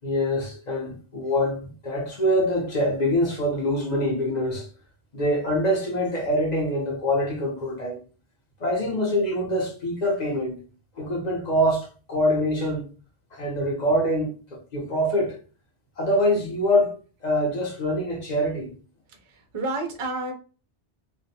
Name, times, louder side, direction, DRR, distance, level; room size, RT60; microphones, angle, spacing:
voice 1, 0.0-4.7 5.1-8.0 8.6-10.6 11.0-12.9 13.3-15.4 16.0-17.0 17.2-18.7, equal, 40° left, 0.8 m, -24 dB
voice 2, 19.3-20.3, right 2 dB, 45° right, 0.4 m, -30 dB
2.4 x 2.1 x 2.7 m
omnidirectional pair, 1.2 m